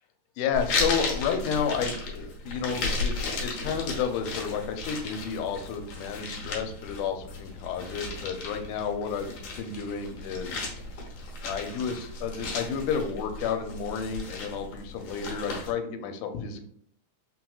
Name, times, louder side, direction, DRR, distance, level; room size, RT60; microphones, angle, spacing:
voice 1, 0.4-9.3 9.6-10.6 11.4-16.7, left 6 dB, 80° left, 6 dB, 2.1 m, -31 dB
sound 1, 0.5-15.7, left 3 dB, 65° left, 1.7 m, -35 dB
5.4 x 3.0 x 2.3 m, 0.65 s
omnidirectional pair, 3.7 m